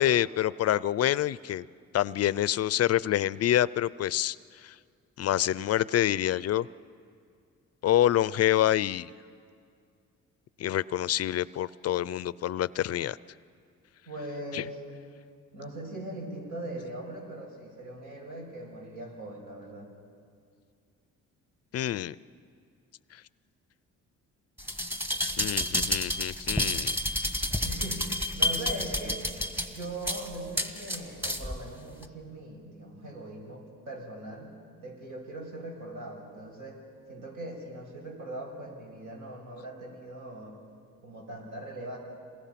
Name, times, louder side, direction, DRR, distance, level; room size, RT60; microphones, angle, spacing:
voice 1, 0.0-1.6 1.9-4.4 4.6-4.7 5.2-6.7 7.8-9.1 10.6-13.2 14.5-14.6 21.7-22.1 25.4-26.9, left 12 dB, 55° left, 19 dB, 0.5 m, -26 dB
voice 2, 14.1-14.8 15.5-19.9 27.6-29.2 29.6-36.8 37.1-40.6 41.0-42.0, right 1 dB, 75° right, -1 dB, 6.7 m, -40 dB
sound 1, 24.6-31.6 32.0-32.1, left 1 dB, 5° right, 1.4 m, -30 dB
27.5 x 20.5 x 5.9 m, 2.3 s
cardioid pair, 90°, 30 cm